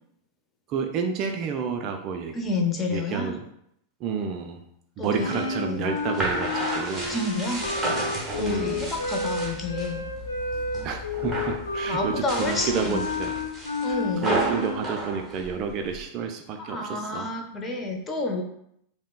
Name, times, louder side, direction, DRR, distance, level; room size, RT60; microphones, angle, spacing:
voice 1, 0.7-2.4 2.9-3.4 4.0-4.6 5.0-7.1 8.4-9.0 10.8-13.3 13.9-17.3, right 6 dB, 40° right, 5 dB, 0.3 m, -30 dB
voice 2, 2.3-3.4 5.0-6.0 7.1-7.6 8.4-10.1 11.9-13.0 13.8-14.3 16.6-18.4, left 3 dB, 20° left, 2 dB, 0.6 m, -29 dB
sound 1, 5.0-9.9 10.3-10.9 11.1-11.6 12.1-16.0, right 2 dB, 10° right, 0.9 m, -32 dB
sound 2, 5.2-14.8, left 3 dB, 75° left, 0.5 m, -31 dB
sound 3, 8.3-13.5, left 6 dB, 40° left, 1.0 m, -43 dB
4.9 x 2.0 x 2.3 m, 0.73 s
figure-of-eight pair, 90°, 0 cm